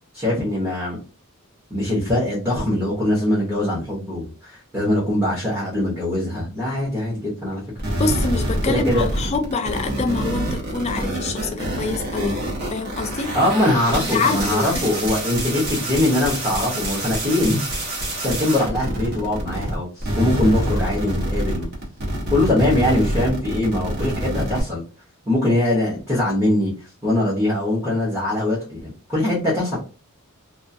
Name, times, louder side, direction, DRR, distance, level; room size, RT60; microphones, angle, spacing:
voice 1, 0.1-1.0 1.7-7.6 8.7-9.1 13.3-17.7 18.2-21.7 22.3-24.8 25.3-29.8, left 1 dB, 10° right, 0.7 m, -22 dB
sound 1, 7.8-19.7 20.0-24.6, right 1 dB, 45° right, 0.8 m, -26 dB
voice 2, 8.0-13.3 13.9-14.9, left 4 dB, 30° left, 0.3 m, -26 dB
2.3 x 2.2 x 2.6 m
head